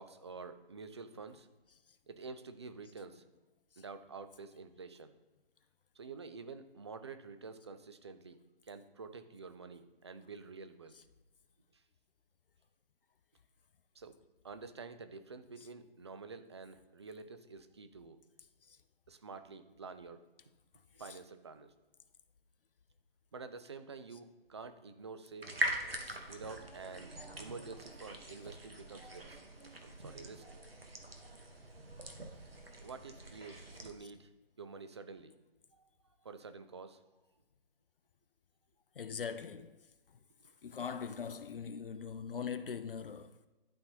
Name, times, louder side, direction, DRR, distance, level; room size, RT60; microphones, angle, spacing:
voice 1, 0.0-1.5 2.1-3.2 3.8-5.1 6.0-11.0 11.7-11.8 13.9-14.2 14.4-18.2 19.1-20.2 20.9-21.7 23.3-25.6 26.3-29.4 29.8-30.5 32.0-32.2 32.8-34.3 34.6-35.3 35.8-35.9 36.2-37.0 40.4-40.5, right 4 dB, 30° right, 0.4 m, -49 dB
sound 1, 25.4-33.9, right 1 dB, 80° right, 1.2 m, -42 dB
voice 2, 39.0-39.8 40.6-43.5, left 6 dB, 65° left, 0.5 m, -42 dB
11.5 x 3.9 x 2.9 m
figure-of-eight pair, 140°, 29 cm